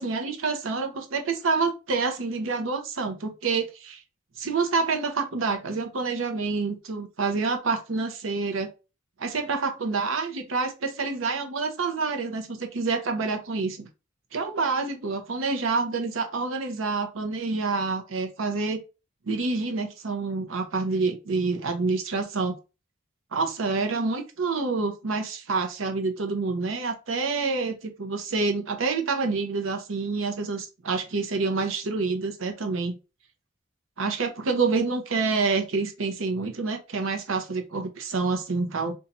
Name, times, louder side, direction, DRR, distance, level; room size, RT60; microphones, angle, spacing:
voice 1, 0.0-4.0 4.4-8.7 9.2-13.9 14.3-18.8 19.3-22.6 23.3-33.0 34.0-38.9, right 4 dB, 85° right, 6 dB, 0.7 m, -27 dB
2.6 x 2.3 x 4.0 m, 0.30 s
head